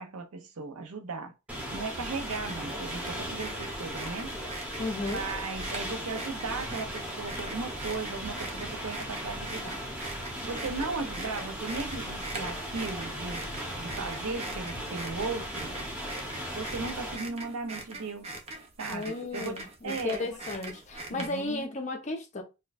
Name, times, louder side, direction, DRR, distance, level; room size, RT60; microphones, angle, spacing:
voice 1, 0.0-1.3 1.7-4.3 5.1-9.8 10.4-13.4 13.8-15.7 16.5-18.4 18.8-20.4 21.1-21.7, right 4 dB, 90° right, 0.6 m, -37 dB
sound 1, 1.5-17.2, equal, 5° right, 0.9 m, -37 dB
sound 2, 2.2-21.6, right 2 dB, 30° right, 0.6 m, -43 dB
voice 2, 4.8-5.2 18.9-22.4, left 2 dB, 35° left, 0.7 m, -34 dB
4.2 x 2.2 x 2.5 m
head